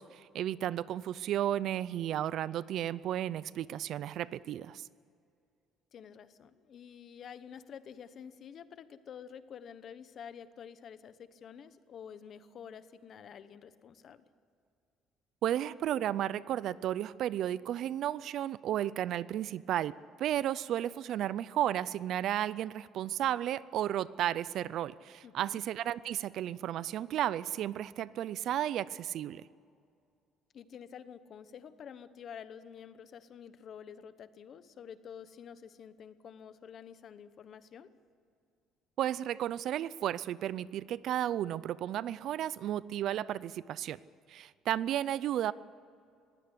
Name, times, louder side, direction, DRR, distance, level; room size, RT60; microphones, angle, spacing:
voice 1, 0.0-4.9 15.4-19.9 20.2-29.5 39.0-44.0 44.3-45.5, right 11 dB, 55° right, 19 dB, 0.5 m, -33 dB
voice 2, 5.9-14.2 25.2-25.6 30.5-37.9, left 8 dB, 40° left, 13 dB, 1.0 m, -49 dB
21.0 x 16.5 x 10.0 m, 2.4 s
cardioid pair, 165°, 0 cm